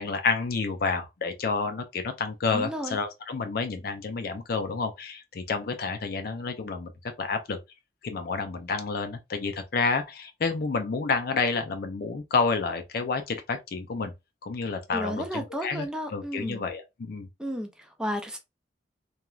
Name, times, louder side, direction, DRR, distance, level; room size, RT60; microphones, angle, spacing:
voice 1, 0.0-6.9 7.2-7.6 8.0-14.1 14.4-17.3, left 4 dB, 55° left, 0.5 m, -29 dB
voice 2, 2.5-3.0 14.9-16.6 17.4-18.4, equal, 5° right, 0.4 m, -33 dB
3.0 x 2.3 x 2.3 m
head